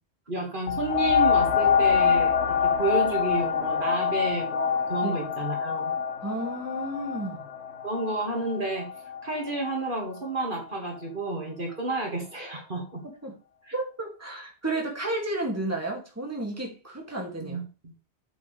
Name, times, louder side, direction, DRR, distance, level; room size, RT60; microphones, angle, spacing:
voice 1, 0.3-5.9 7.8-8.9 9.2-13.0 13.6-13.7 17.4-17.9, right 2 dB, 50° right, 2.2 m, -31 dB
sound 1, 0.7-9.9 10.6-10.7, left 7 dB, 90° left, 1.0 m, -25 dB
voice 2, 6.2-7.4 13.2-13.4 13.7-17.6, right 2 dB, 15° right, 2.4 m, -32 dB
8.3 x 8.0 x 3.4 m
omnidirectional pair, 1.1 m